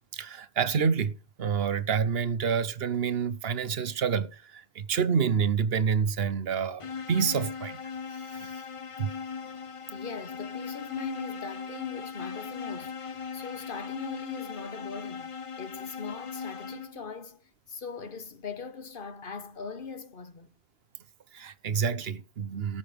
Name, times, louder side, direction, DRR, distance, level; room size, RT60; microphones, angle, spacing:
voice 1, 0.1-7.8 8.1-8.6 9.0-9.1 21.3-22.8, right 6 dB, 70° right, 1.1 m, -28 dB
sound 1, 6.8-17.1, left 6 dB, 35° left, 0.8 m, -39 dB
voice 2, 9.9-17.4 17.7-20.5, left 5 dB, 55° left, 1.3 m, -40 dB
13.5 x 5.6 x 6.8 m
omnidirectional pair, 1.0 m